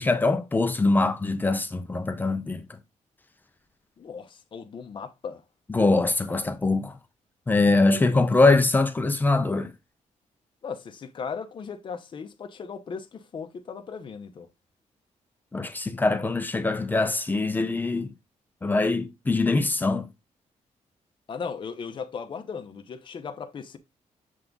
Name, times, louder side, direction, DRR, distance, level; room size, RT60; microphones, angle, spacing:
voice 1, 0.0-2.6 5.7-7.0 7.5-9.7 15.5-18.1 18.6-20.1, left 3 dB, 15° left, 0.6 m, -23 dB
voice 2, 4.0-5.4 7.6-8.3 10.6-14.5 21.3-23.8, left 6 dB, 40° left, 0.8 m, -37 dB
7.6 x 3.4 x 3.9 m
wide cardioid pair, 175°, 13 cm